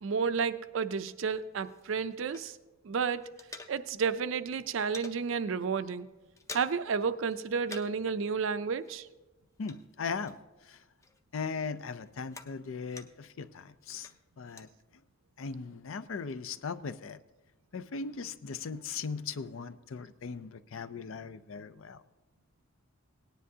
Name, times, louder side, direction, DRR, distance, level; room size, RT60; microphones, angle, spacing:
voice 1, 0.0-2.6 2.8-3.3 3.7-6.1 6.5-9.1, right 5 dB, 60° right, 13 dB, 0.4 m, -31 dB
sound 1, 1.3-2.8 3.0-4.2 4.4-5.2 5.6-5.8 6.1-7.0 7.2-8.1 8.3-10.7 11.0-13.4 13.8-14.7, left 3 dB, 15° left, 0.5 m, -49 dB
voice 2, 9.6-10.4 10.6-10.8 11.3-14.1 14.4-14.7 15.4-17.2 17.7-22.0, left 5 dB, 65° left, 13 dB, 0.5 m, -38 dB
18.0 x 10.0 x 2.8 m, 1.1 s
head